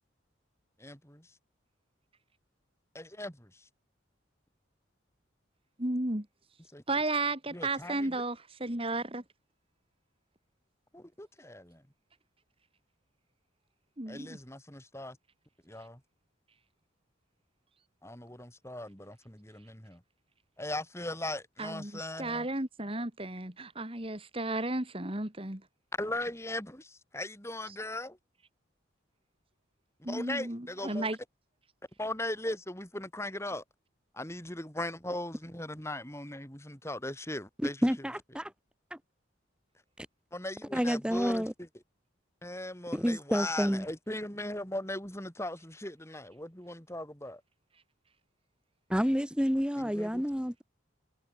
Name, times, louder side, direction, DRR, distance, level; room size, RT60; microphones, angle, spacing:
voice 1, 0.8-1.3 2.9-3.5 6.7-6.8 7.5-8.2 10.9-11.8 14.1-15.2 15.7-16.0 18.0-20.0 20.6-22.5 25.9-28.2 30.1-31.1 32.0-33.6 34.1-37.8 40.3-41.5 42.4-47.4 49.8-50.2, left 1 dB, 15° left, 5.5 m, -38 dB
voice 2, 5.8-6.3 6.9-9.2 14.0-14.4 21.6-25.6 27.7-27.8 30.0-31.2, right 2 dB, 30° right, 2.4 m, -34 dB
voice 3, 37.6-38.5 38.9-39.0 40.0-40.1 40.7-41.5 42.9-43.9 48.9-50.6, equal, 5° right, 5.4 m, -29 dB
head